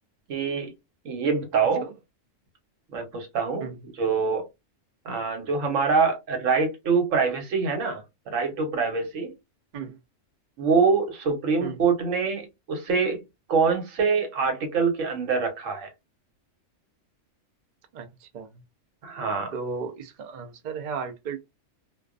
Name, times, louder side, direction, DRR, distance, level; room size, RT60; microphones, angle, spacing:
voice 1, 0.3-0.7 1.0-1.9 2.9-4.4 5.0-9.3 10.6-13.2 13.5-15.9 19.0-19.5, right 5 dB, 85° right, 1.2 m, -25 dB
voice 2, 17.9-18.5 19.5-21.4, right 5 dB, 60° right, 0.5 m, -35 dB
2.4 x 2.2 x 2.3 m
omnidirectional pair, 1.3 m